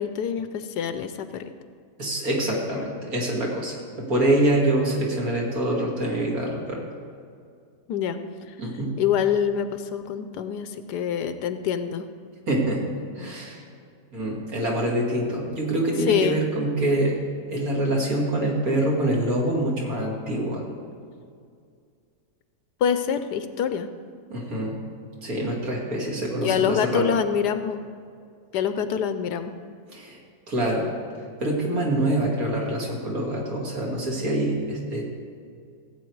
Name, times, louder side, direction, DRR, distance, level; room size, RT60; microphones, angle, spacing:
voice 1, 0.0-1.5 7.9-8.2 9.0-12.1 16.1-16.4 22.8-23.9 26.4-27.8 28.5-29.5, left 8 dB, 75° left, 10 dB, 1.2 m, -25 dB
voice 2, 2.0-6.8 8.6-8.9 12.5-12.8 13.2-13.6 14.1-17.1 17.5-20.6 24.3-24.8 25.2-27.1 29.9-30.2 30.5-30.9 31.4-35.0, right 1 dB, 55° right, -2 dB, 2.6 m, -25 dB
16.0 x 8.4 x 4.7 m, 2.3 s
omnidirectional pair, 1.8 m